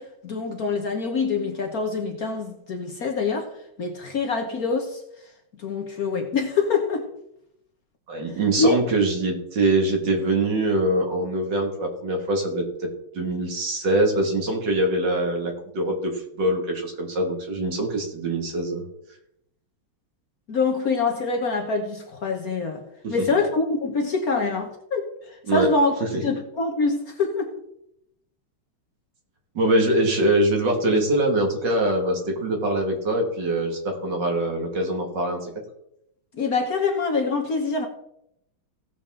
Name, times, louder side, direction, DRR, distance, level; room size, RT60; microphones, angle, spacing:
voice 1, 0.0-3.5 3.8-5.0 5.6-7.1 8.6-8.8 20.5-22.8 23.1-25.9 26.2-27.5 36.3-37.9, left 4 dB, 50° left, 1.3 m, -25 dB
voice 2, 8.1-12.6 13.1-18.9 23.0-23.1 25.5-25.7 29.5-35.5, right 1 dB, 55° right, 2.6 m, -23 dB
17.0 x 7.2 x 3.7 m
omnidirectional pair, 2.3 m